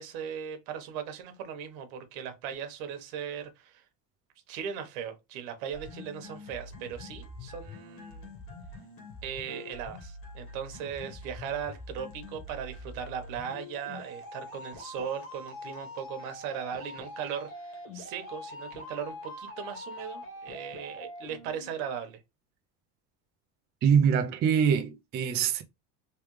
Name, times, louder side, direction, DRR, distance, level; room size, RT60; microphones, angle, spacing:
voice 1, 0.0-3.8 4.5-8.3 9.2-22.2, right 8 dB, 80° right, 1.3 m, -38 dB
sound 1, 5.7-21.7, left 2 dB, 35° left, 1.5 m, -44 dB
voice 2, 23.8-25.6, right 7 dB, 25° right, 0.4 m, -24 dB
3.3 x 3.2 x 3.1 m
cardioid pair, 155°, 40 cm